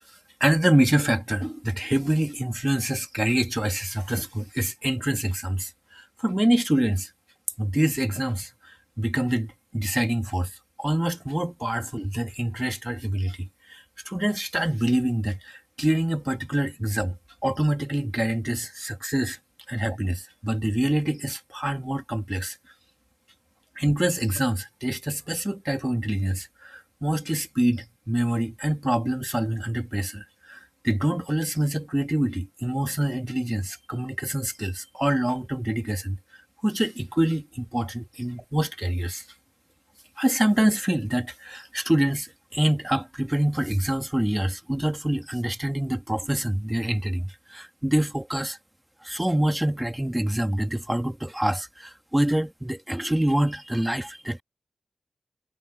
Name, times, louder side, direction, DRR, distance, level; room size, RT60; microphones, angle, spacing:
voice 1, 0.4-7.1 7.6-10.5 10.8-17.1 17.4-19.4 19.7-22.6 23.7-30.6 30.8-36.2 36.6-39.2 40.2-48.6 49.0-54.4, right 1 dB, 10° right, 1.8 m, -26 dB
wide cardioid pair, 85°, 0 cm